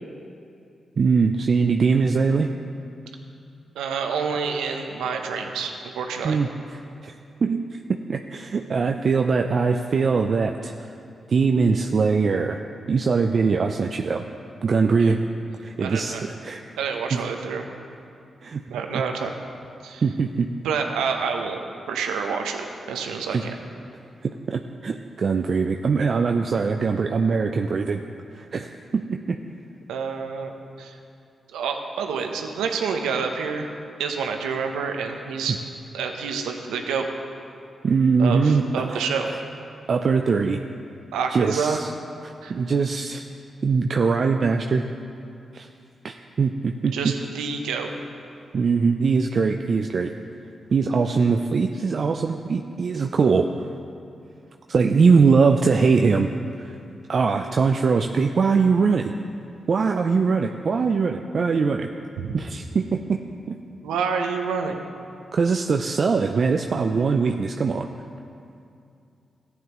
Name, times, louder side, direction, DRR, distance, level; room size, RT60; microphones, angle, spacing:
voice 1, 1.0-2.5 6.2-7.1 7.4-10.7 11.3-12.6 12.9-14.2 14.6-15.2 15.6-16.6 17.1-17.2 18.4-18.6 18.9-19.0 20.0-20.5 23.3-23.4 24.2-28.0 28.3-29.4 35.5-35.6 37.8-39.4 39.9-40.6 41.3-41.9 42.5-43.2 43.6-44.8 45.5-45.7 46.0-47.1 48.5-50.1 50.7-53.5 54.7-56.3 56.6-56.7 57.1-59.1 59.7-61.9 62.3-63.2 63.5-63.6 65.3-67.9, right 5 dB, 60° right, 4 dB, 0.4 m, -22 dB
voice 2, 3.8-6.4 15.0-15.1 15.8-16.2 16.8-17.6 18.7-19.4 19.8-20.0 20.6-21.6 21.9-23.6 29.9-30.5 30.8-31.0 31.5-33.7 34.0-35.6 35.9-37.1 38.2-39.3 41.1-41.8 42.4-42.5 46.9-47.9 62.2-62.4 63.8-64.8, right 6 dB, 85° right, 4 dB, 0.7 m, -28 dB
14.5 x 9.3 x 3.0 m, 2.6 s
supercardioid pair, 45°, 0 cm